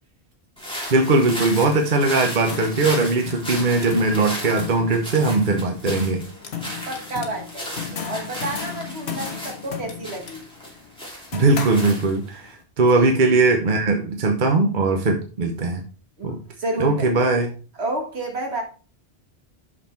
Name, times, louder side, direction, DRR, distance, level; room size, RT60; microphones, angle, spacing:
sound 1, 0.6-12.5, equal, 5° left, 2.8 m, -35 dB
voice 1, 0.9-6.2 11.3-15.8 16.2-16.4 16.8-17.5, right 3 dB, 50° right, 1.1 m, -20 dB
sound 2, 2.5-12.4, left 7 dB, 70° left, 1.4 m, -35 dB
voice 2, 6.9-10.5 13.0-13.1 16.2-17.3 17.7-18.6, right 2 dB, 70° right, 2.0 m, -30 dB
6.6 x 5.8 x 4.4 m
omnidirectional pair, 1.1 m